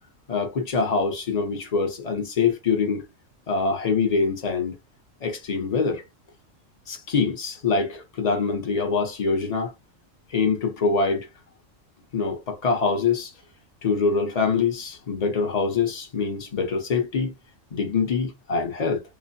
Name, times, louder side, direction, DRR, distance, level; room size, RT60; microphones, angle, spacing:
voice 1, 0.3-3.0 3.5-4.8 5.2-6.0 6.9-9.7 10.3-11.3 12.1-13.3 13.8-17.3 17.7-19.0, left 4 dB, 40° left, 0.7 m, -24 dB
2.5 x 2.1 x 2.5 m
omnidirectional pair, 1.4 m